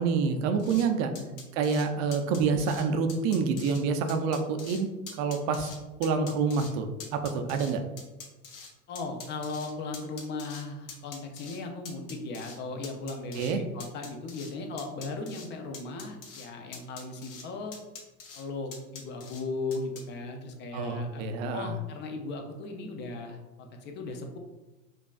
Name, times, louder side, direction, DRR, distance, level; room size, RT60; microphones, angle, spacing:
voice 1, 0.0-1.1 1.6-4.9 5.2-5.7 6.0-7.8 13.4-13.6 20.7-21.7, right 5 dB, 45° right, 7 dB, 0.5 m, -27 dB
sound 1, 0.6-0.9 1.2-1.9 2.1-2.8 3.1-3.8 4.1-4.8 5.1-5.8 6.0-6.7 7.0-8.7 9.0-10.6 10.9-11.6 11.9-12.6 12.8-13.5 13.8-14.5 14.8-15.5 15.7-16.5 16.7-17.4 17.7-18.4 18.7-19.4 19.7-20.0, left 5 dB, 65° left, 1.1 m, -44 dB
voice 2, 8.9-17.7 18.3-21.2 21.5-24.4, left 3 dB, 25° left, 4 dB, 0.4 m, -37 dB
5.1 x 2.4 x 2.3 m, 1.1 s
hypercardioid pair, 110°, 44 cm